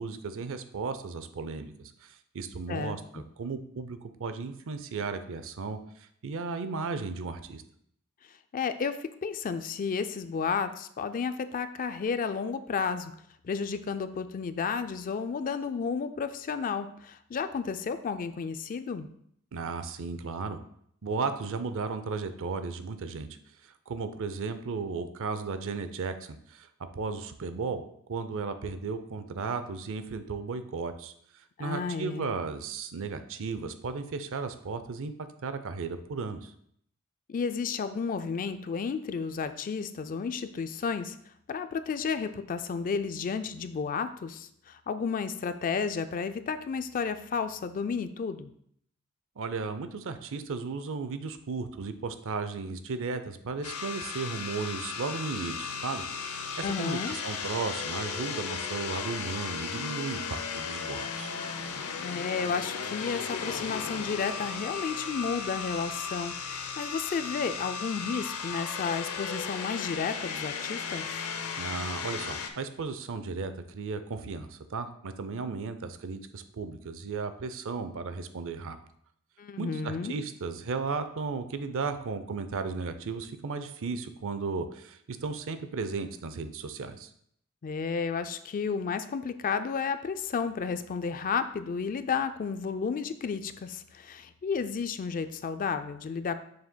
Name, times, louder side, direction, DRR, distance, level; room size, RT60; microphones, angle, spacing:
voice 1, 0.0-7.6 19.5-20.6 21.0-23.3 23.9-26.7 26.9-27.8 28.1-31.1 31.6-36.5 49.4-61.4 71.6-78.8 79.6-87.1, right 4 dB, 65° right, 10 dB, 0.5 m, -35 dB
voice 2, 2.7-3.2 8.5-13.1 13.4-19.1 31.6-32.3 37.3-41.2 41.5-48.5 56.6-57.2 62.0-71.1 79.4-80.1 87.6-96.4, left 5 dB, 40° left, 10 dB, 0.3 m, -32 dB
sound 1, 53.6-72.5, left 6 dB, 85° left, 0.7 m, -35 dB
7.0 x 6.4 x 2.2 m, 0.67 s
head